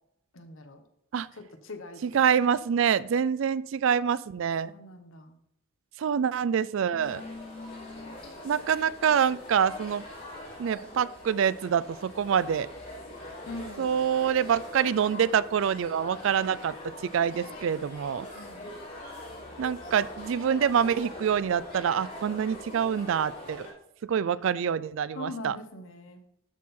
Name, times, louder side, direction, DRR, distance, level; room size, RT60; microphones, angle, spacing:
voice 1, 0.3-0.8 1.3-2.2 4.6-5.4 6.9-8.2 13.5-13.9 18.3-18.7 25.1-26.2, left 2 dB, 70° left, 7 dB, 1.1 m, -42 dB
voice 2, 2.0-4.7 6.0-7.2 8.4-10.0 10.6-12.7 13.8-16.7 17.1-18.3 19.6-23.7 24.1-25.6, right 8 dB, 65° right, 18 dB, 0.3 m, -26 dB
sound 1, 7.0-23.7, left 1 dB, 40° left, 3.4 m, -43 dB
12.5 x 4.3 x 3.7 m, 0.78 s
head